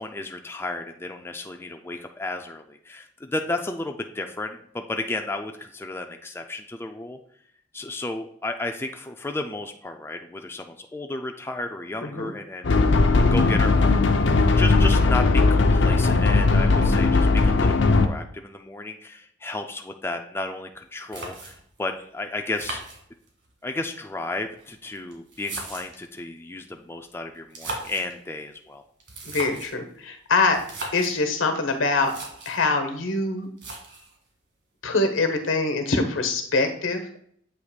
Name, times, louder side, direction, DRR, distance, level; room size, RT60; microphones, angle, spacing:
voice 1, 0.0-7.2 7.7-12.9 13.2-14.0 14.5-22.8 23.6-28.8, left 2 dB, 10° left, 4 dB, 0.4 m, -33 dB
voice 2, 12.0-12.3 29.2-30.6 30.9-32.1 32.4-33.5 34.8-37.2, left 3 dB, 85° left, 6 dB, 1.2 m, -24 dB
sound 1, 12.6-18.1, left 3 dB, 65° left, 0.6 m, -18 dB
sound 2, 20.7-20.8 21.1-21.8 22.5-23.5 24.4-26.1 27.4-28.1 29.0-29.8 30.5-31.2 31.7-31.8 32.0-32.6 33.6-34.2, right 2 dB, 60° right, 1.8 m, -37 dB
7.9 x 3.0 x 5.0 m, 0.63 s
head